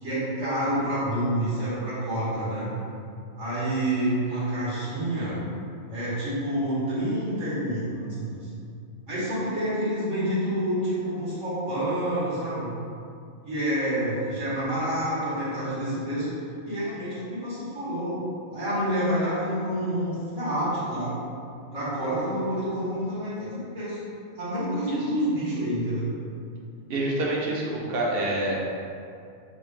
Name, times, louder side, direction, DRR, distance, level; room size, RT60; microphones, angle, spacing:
voice 1, 0.0-2.7 3.4-5.4 5.9-8.4 9.1-12.7 13.4-16.3 16.6-18.2 18.5-21.2 21.7-24.0 24.4-26.0, right 1 dB, 70° right, -11 dB, 1.8 m, -28 dB
voice 2, 26.9-28.5, right 1 dB, 55° right, -4 dB, 0.8 m, -27 dB
3.5 x 2.4 x 4.4 m, 2.4 s
omnidirectional pair, 1.4 m